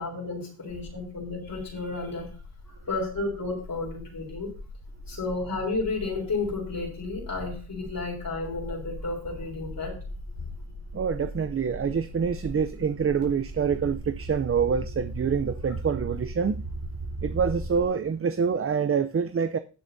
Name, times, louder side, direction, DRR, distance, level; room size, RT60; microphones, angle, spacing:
voice 1, 0.0-2.3 2.9-4.5 5.1-9.9, left 3 dB, 55° left, 3.7 m, -32 dB
sound 1, 0.7-17.8, right 1 dB, 70° right, 3.9 m, -39 dB
voice 2, 10.9-16.5 17.2-19.6, right 6 dB, 35° right, 0.5 m, -26 dB
18.5 x 6.8 x 2.7 m
cardioid pair, 80°, 41 cm